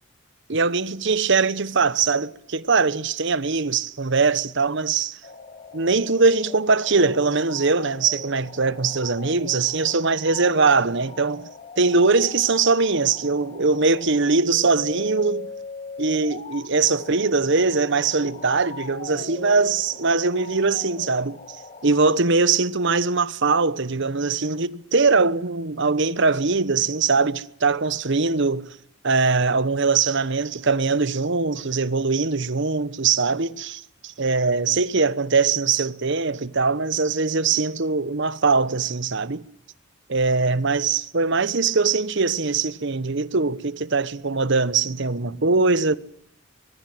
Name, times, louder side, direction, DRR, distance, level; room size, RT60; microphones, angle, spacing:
voice 1, 0.5-5.2 5.7-11.5 11.8-15.5 16.0-21.6 21.8-28.7 29.0-39.4 40.1-46.0, right 4 dB, 55° right, 1.0 m, -21 dB
sound 1, 5.2-22.1, left 4 dB, 30° left, 2.0 m, -41 dB
24.0 x 21.5 x 7.8 m
head